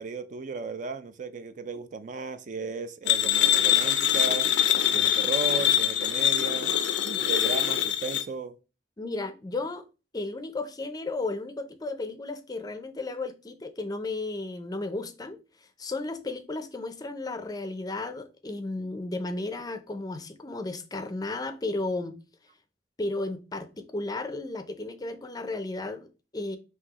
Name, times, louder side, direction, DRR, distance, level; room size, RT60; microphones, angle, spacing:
voice 1, 0.0-4.5 4.9-6.7 7.0-8.5, right 4 dB, 45° right, 0.4 m, -35 dB
sound 1, 3.1-8.2, left 11 dB, 85° left, 0.4 m, -24 dB
voice 2, 9.0-9.8 10.1-15.4 15.8-22.2 23.0-26.6, left 2 dB, 20° left, 0.4 m, -34 dB
5.8 x 2.7 x 2.9 m
head